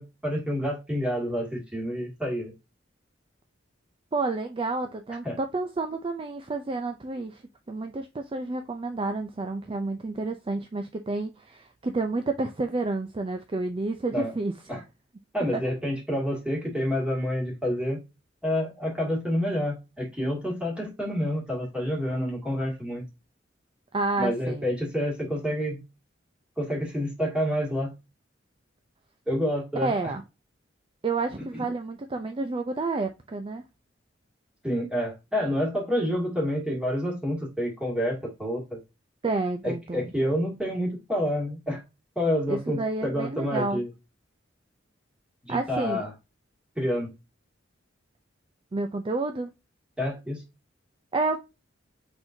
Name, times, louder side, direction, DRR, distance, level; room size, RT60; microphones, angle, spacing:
voice 1, 0.0-2.5 5.2-5.4 14.1-14.3 14.7-14.8 15.3-18.0 18.4-23.0 24.2-25.8 26.6-27.9 29.3-29.9 31.5-31.6 34.6-38.8 39.6-41.8 42.2-43.9 45.4-46.1 46.8-47.1 50.0-50.4, equal, 5° right, 2.1 m, -28 dB
voice 2, 4.1-7.4 7.7-14.8 15.5-15.6 23.9-24.6 29.8-30.2 31.0-33.6 39.2-40.1 42.5-43.8 45.5-46.1 48.7-49.5 51.1-51.4, right 3 dB, 30° right, 0.4 m, -30 dB
4.4 x 4.0 x 2.6 m
head